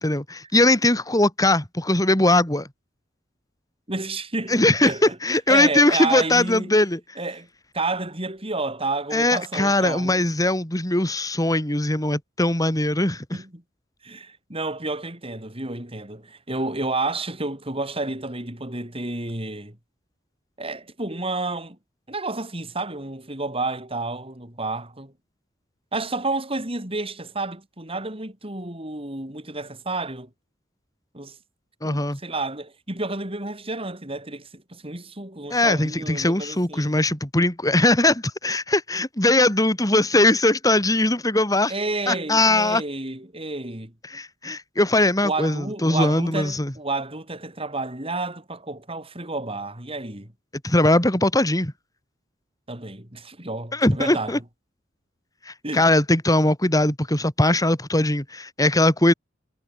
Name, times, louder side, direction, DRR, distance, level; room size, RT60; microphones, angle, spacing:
voice 1, 0.0-2.7 4.5-7.0 9.1-13.2 31.8-32.2 35.5-41.7 42.1-42.8 44.1-46.7 50.6-51.7 53.7-54.4 55.5-59.1, left 1 dB, 20° left, 3.5 m, -20 dB
voice 2, 3.9-5.2 5.5-6.7 7.2-7.5 7.7-10.2 13.3-13.6 14.0-19.8 20.6-21.8 22.1-25.1 25.9-30.3 31.1-31.4 31.8-36.9 41.7-43.9 45.2-50.3 52.7-54.3 55.6-55.9, right 2 dB, 30° right, 5.7 m, -30 dB
head